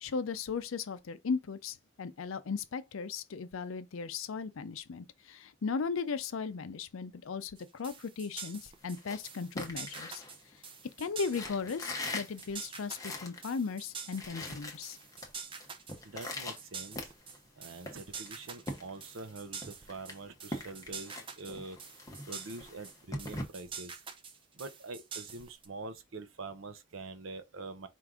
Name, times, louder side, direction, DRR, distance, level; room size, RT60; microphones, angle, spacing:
voice 1, 0.0-10.2 11.0-15.0, left 5 dB, 80° left, 0.5 m, -37 dB
sound 1, 7.6-25.7, right 6 dB, 25° right, 0.5 m, -46 dB
sound 2, 8.8-10.9 11.3-13.5 13.8-13.9 14.1-15.3 15.6-17.5 17.9-19.3 19.6-23.4, left 2 dB, 15° left, 0.7 m, -42 dB
voice 2, 16.0-17.1 17.6-21.8 22.3-24.0 24.5-27.9, right 3 dB, 75° right, 0.7 m, -45 dB
4.6 x 2.5 x 3.6 m
head